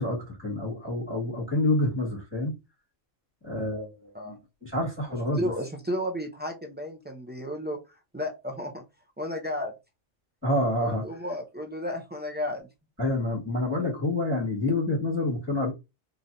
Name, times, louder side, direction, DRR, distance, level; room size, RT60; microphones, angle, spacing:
voice 1, 0.0-2.5 3.4-5.5 10.4-11.2 13.0-15.7, left 1 dB, 10° left, 1.7 m, -28 dB
voice 2, 5.4-7.8 8.1-8.8 9.2-9.7 10.8-12.7, left 1 dB, 15° right, 0.3 m, -33 dB
3.9 x 3.1 x 2.7 m
omnidirectional pair, 1.4 m